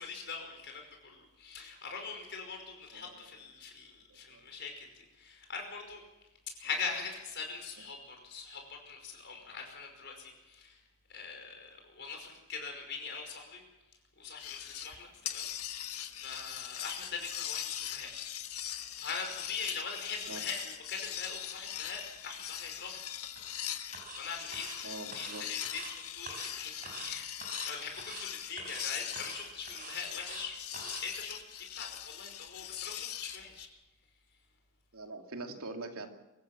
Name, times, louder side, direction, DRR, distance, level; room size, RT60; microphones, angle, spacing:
voice 1, 0.0-6.0 6.5-10.8 11.1-13.6 14.2-18.1 19.0-23.0 23.6-23.8 24.1-33.7, left 5 dB, 50° left, 3 dB, 5.3 m, -42 dB
voice 2, 2.9-3.4 4.3-4.4 20.3-20.5 24.8-25.4 34.9-36.1, right 2 dB, 80° right, 4 dB, 2.6 m, -43 dB
sound 1, 14.4-15.0 15.3-33.7, left 11 dB, 85° left, 1.4 m, -41 dB
sound 2, 23.4-23.6 23.9-24.2 24.5-24.8 25.1-25.9 26.3-26.5 26.8-27.1 27.4-27.7 28.0-28.3 28.6-28.9 29.1-30.5 30.7-31.0, right 3 dB, 40° right, 5.5 m, -45 dB
25.0 x 15.0 x 7.4 m, 1.0 s
head